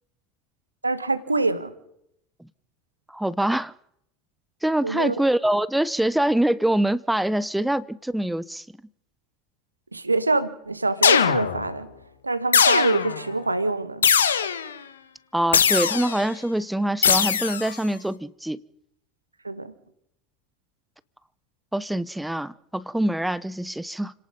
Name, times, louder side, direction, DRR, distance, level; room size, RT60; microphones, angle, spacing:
voice 1, 0.8-1.7 4.8-5.1 9.9-11.9 12.2-14.1 19.4-19.7, right 2 dB, 85° right, 1.6 m, -25 dB
voice 2, 3.1-3.7 4.6-8.6 15.3-18.6 21.7-24.1, right 1 dB, 5° right, 0.9 m, -24 dB
sound 1, 11.0-11.7 12.5-13.2 14.0-14.7 15.5-16.2 17.0-17.7, left 7 dB, 75° left, 1.6 m, -20 dB
30.0 x 18.0 x 5.4 m
figure-of-eight pair, 70°, 0 cm